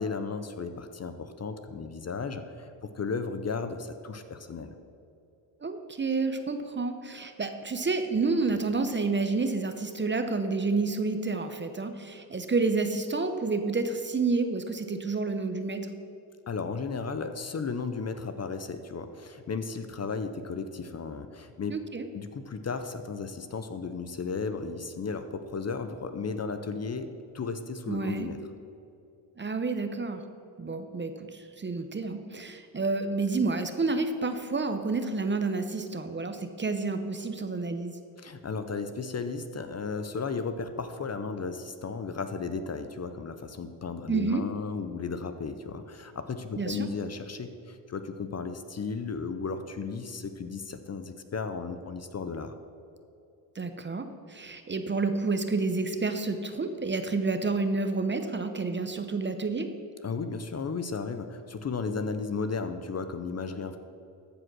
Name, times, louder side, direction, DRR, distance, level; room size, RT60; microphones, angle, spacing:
voice 1, 0.0-4.7 16.5-21.8 22.1-28.4 38.2-52.5 60.0-63.8, left 4 dB, 30° left, 9 dB, 0.7 m, -34 dB
voice 2, 5.6-15.8 21.7-22.1 27.9-28.3 29.4-30.2 30.6-37.9 44.1-44.4 46.6-46.9 53.6-59.7, right 3 dB, 25° right, 8 dB, 0.8 m, -29 dB
14.0 x 5.0 x 6.1 m, 2.7 s
cardioid pair, 80°, 48 cm